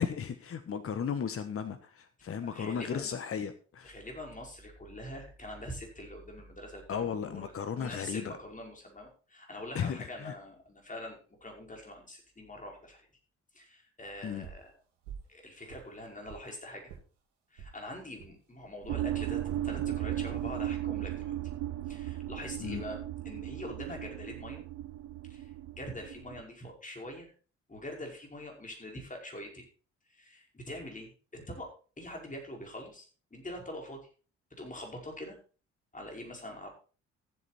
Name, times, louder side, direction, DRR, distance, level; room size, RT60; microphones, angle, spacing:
voice 1, 0.2-3.9 6.9-8.4 9.7-10.3 14.2-14.5 22.6-22.8, left 7 dB, 40° left, 10 dB, 1.3 m, -35 dB
voice 2, 2.5-3.2 3.8-13.1 13.5-14.7 15.3-16.9 17.5-21.3 21.9-24.6 25.3-25.5 25.8-27.3 27.7-29.7 30.1-34.1 34.5-35.4 35.9-36.7, left 1 dB, 20° left, 1 dB, 5.3 m, -44 dB
sound 1, 14.4-14.7 15.0-15.3 15.7-16.5 16.9-17.0 17.6-17.8 18.2-18.3 18.8-19.0 19.5-19.7 20.3-20.6, right 7 dB, 75° right, 2.1 m, -48 dB
sound 2, 18.9-26.4, right 13 dB, 55° right, 0.6 m, -36 dB
14.5 x 8.0 x 4.2 m, 0.37 s
figure-of-eight pair, 45°, 35 cm